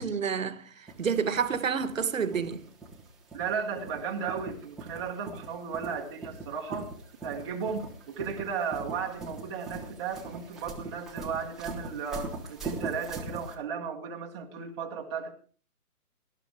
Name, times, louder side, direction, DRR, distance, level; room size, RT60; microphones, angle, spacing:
voice 1, 0.0-2.6, right 6 dB, 60° right, 1.6 m, -29 dB
sound 1, 0.9-13.5, right 3 dB, ahead, 1.2 m, -41 dB
voice 2, 3.3-6.9 7.2-15.3, right 6 dB, 20° right, 1.4 m, -35 dB
19.0 x 13.0 x 3.5 m
hypercardioid pair, 160°, 45 cm